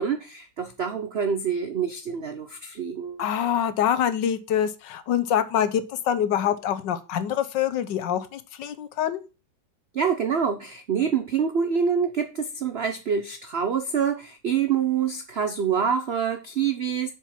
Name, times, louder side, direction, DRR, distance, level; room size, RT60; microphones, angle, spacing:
voice 1, 0.0-3.3 9.9-17.1, right 7 dB, 85° right, 8 dB, 0.5 m, -26 dB
voice 2, 3.2-9.2, left 9 dB, 70° left, 12 dB, 1.4 m, -25 dB
7.4 x 5.2 x 5.9 m, 0.31 s
omnidirectional pair, 2.1 m